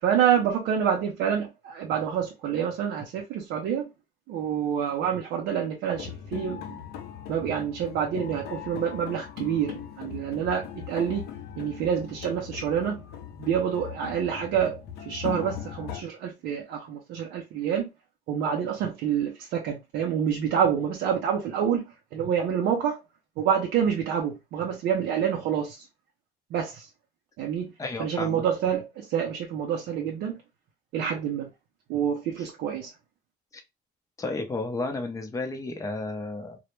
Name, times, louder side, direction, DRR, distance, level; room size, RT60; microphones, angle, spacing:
voice 1, 0.0-3.9 4.3-6.8 7.3-11.3 11.6-13.0 13.4-17.9 18.3-21.8 22.1-23.0 23.4-25.9 26.5-26.9 27.4-27.7 28.0-30.4 30.9-31.5 31.9-32.9, right 8 dB, 80° right, 0.5 m, -27 dB
sound 1, 5.9-16.0, left 9 dB, 75° left, 0.5 m, -39 dB
voice 2, 27.8-28.4 33.5-33.6 34.2-36.6, left 2 dB, 20° left, 0.6 m, -32 dB
2.1 x 2.0 x 3.0 m
cardioid pair, 110°, 17 cm